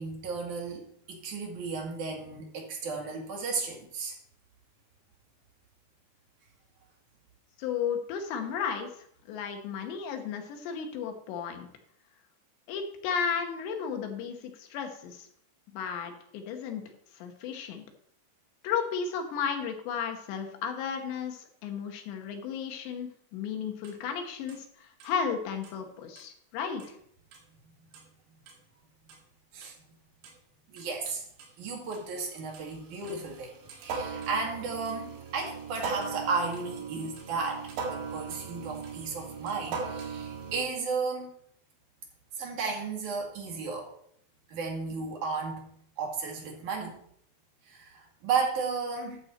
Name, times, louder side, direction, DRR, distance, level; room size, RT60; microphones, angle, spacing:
voice 1, 0.0-4.1 29.5-29.7 30.7-31.2 31.6-33.5 33.8-41.3 42.4-43.9 44.5-45.7 46.0-47.0 47.7-49.2, right 4 dB, 50° right, 0 dB, 2.7 m, -34 dB
voice 2, 7.6-8.9 9.3-11.7 12.7-15.3 15.7-16.8 17.2-17.8 18.6-27.0, left 7 dB, 70° left, 4 dB, 3.1 m, -34 dB
sound 1, 23.8-23.9 24.5-24.6 25.0-25.1 25.6-25.7 26.2-26.3 26.8-26.9 27.3-27.4 27.9-28.0 28.5-28.6 29.1-29.2 29.6-29.7 30.2-30.3 30.8-31.5 31.9-40.6, right 5 dB, 75° right, 4.3 m, -39 dB
12.0 x 7.1 x 4.4 m, 0.66 s
omnidirectional pair, 5.7 m